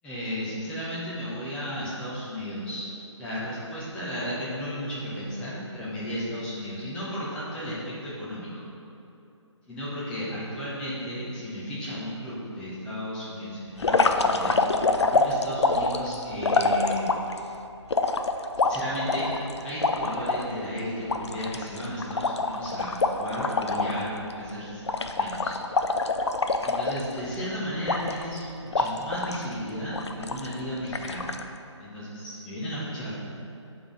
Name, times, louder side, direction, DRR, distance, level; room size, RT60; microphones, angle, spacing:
voice 1, 0.0-2.9 3.2-8.7 9.7-14.6 15.1-17.1 18.6-25.6 26.6-31.3 31.8-33.2, equal, 5° left, -10 dB, 1.0 m, -34 dB
sound 1, 13.8-17.4 17.9-20.4 20.8-20.9 21.1-24.0 24.3-24.5 24.9-27.4 27.9-28.4 28.7-29.4 29.9-30.5 30.9-31.4, left 3 dB, 65° left, 0.4 m, -25 dB
6.9 x 3.8 x 4.9 m, 2.7 s
figure-of-eight pair, 150°, 16 cm